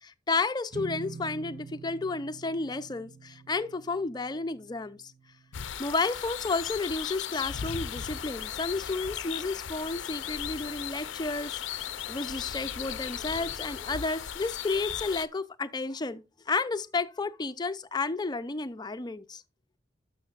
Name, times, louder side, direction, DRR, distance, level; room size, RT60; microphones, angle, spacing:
voice 1, 0.0-5.0 5.8-19.4, left 3 dB, 20° left, 0.4 m, -32 dB
sound 1, 0.7-7.1, right 4 dB, 50° right, 0.6 m, -47 dB
sound 2, 5.5-15.3, left 9 dB, 85° left, 0.5 m, -37 dB
sound 3, 7.3-14.0, equal, 30° right, 1.9 m, -52 dB
12.5 x 6.4 x 2.4 m
head